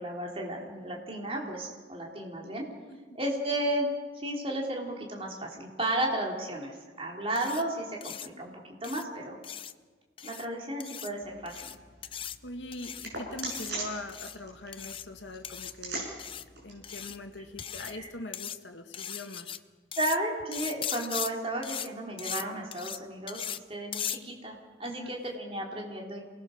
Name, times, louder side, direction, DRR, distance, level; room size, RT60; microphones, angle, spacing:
voice 1, 0.0-2.6 3.2-3.9 4.1-8.5 8.8-9.4 10.2-11.5 17.8-18.1 20.0-23.4 23.7-26.2, right 1 dB, 30° right, -1 dB, 3.5 m, -33 dB
sound 1, 7.4-7.6 8.0-8.3 8.8-9.0 9.4-9.7 10.2-10.5 10.8-11.1 11.5-11.8 12.0-12.4 12.7-13.1 13.4-13.7 14.1-14.4 14.7-15.0 15.4-15.7 16.2-16.4 16.8-17.2 17.6-17.9 18.3-18.6 18.9-19.6 19.9-20.2 20.5-21.3 21.6-21.9 22.2-22.4 22.7-23.0 23.3-23.6 23.9-24.2, left 9 dB, 30° left, 0.6 m, -38 dB
sound 2, 11.2-18.0, right 2 dB, 65° right, 7.4 m, -43 dB
voice 2, 12.1-16.1 16.5-19.6 24.8-25.2, left 2 dB, 75° left, 5 dB, 2.0 m, -42 dB
28.0 x 19.5 x 6.5 m, 1.4 s
head